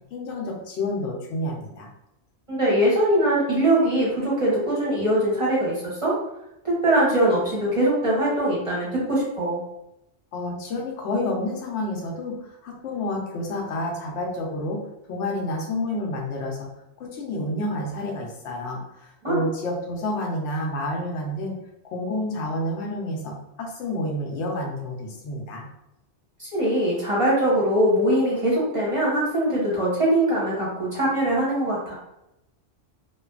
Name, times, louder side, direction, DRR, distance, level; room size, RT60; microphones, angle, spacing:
voice 1, 0.1-1.9 10.3-14.8 15.1-16.7 17.0-21.5 21.8-25.7, left 1 dB, 80° left, 0 dB, 0.9 m, -29 dB
voice 2, 2.5-6.2 6.6-9.6 19.2-19.4 26.4-32.0, right 1 dB, 35° right, -6 dB, 0.7 m, -22 dB
2.6 x 2.2 x 2.3 m, 0.86 s
omnidirectional pair, 1.2 m